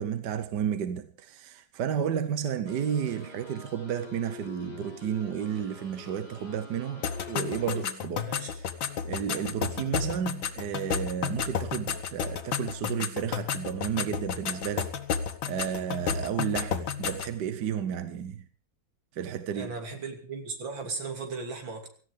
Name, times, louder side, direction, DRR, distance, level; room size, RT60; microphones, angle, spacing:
voice 1, 0.0-8.7 9.0-15.0 15.5-18.5 19.1-19.8, right 8 dB, 65° right, 1.5 m, -32 dB
sound 1, 2.7-7.9, left 4 dB, 20° left, 2.7 m, -46 dB
sound 2, 7.0-17.4, left 7 dB, 80° left, 1.9 m, -32 dB
voice 2, 19.5-21.9, right 4 dB, 85° right, 3.7 m, -36 dB
17.5 x 15.0 x 5.1 m
omnidirectional pair, 2.1 m